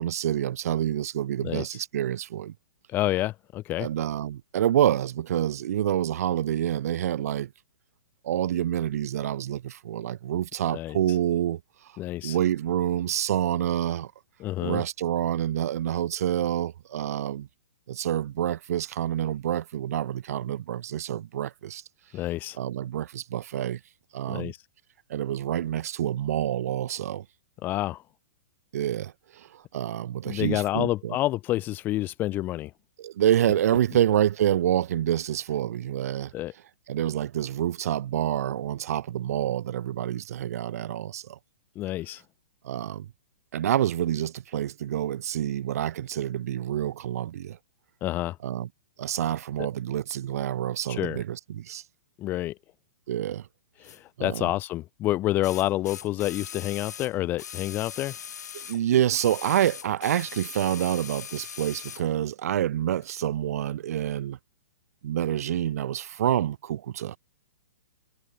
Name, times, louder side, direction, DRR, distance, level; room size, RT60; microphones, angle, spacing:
voice 1, 0.0-2.5 3.8-7.5 8.2-11.9 12.2-14.1 14.6-17.5 17.9-21.8 22.6-23.8 24.1-24.5 25.1-27.2 28.7-31.1 33.0-36.3 36.9-41.4 42.6-43.1 43.5-47.6 48.4-48.7 49.0-51.8 53.1-53.5 54.2-54.5 58.5-64.4 65.0-67.2, right 11 dB, 65° right, 0.7 m, -27 dB
voice 2, 2.9-3.9 10.7-11.0 12.0-12.4 14.4-14.8 22.1-22.6 24.3-24.6 27.6-28.0 30.3-32.7 36.3-36.5 41.8-42.2 48.0-48.4 49.6-49.7 50.9-51.2 52.2-52.6 53.8-58.2, left 15 dB, 20° left, 0.6 m, -28 dB
sound 1, 53.8-54.0 55.4-58.8 59.1-62.1 63.0-63.1, left 8 dB, 80° left, 6.1 m, -41 dB
hypercardioid pair, 150°, 9 cm